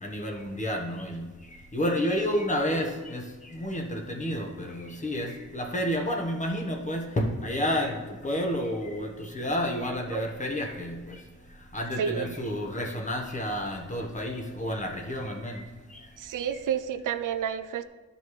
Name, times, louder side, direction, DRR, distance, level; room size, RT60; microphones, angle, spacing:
voice 1, 0.0-1.2 1.7-3.2 3.5-11.2 11.7-15.6 16.5-16.6, equal, 25° left, 2 dB, 1.1 m, -30 dB
voice 2, 12.0-12.3 16.2-17.8, right 8 dB, 85° right, 11 dB, 0.5 m, -30 dB
12.0 x 5.3 x 3.2 m, 1.2 s
wide cardioid pair, 110°, 30 cm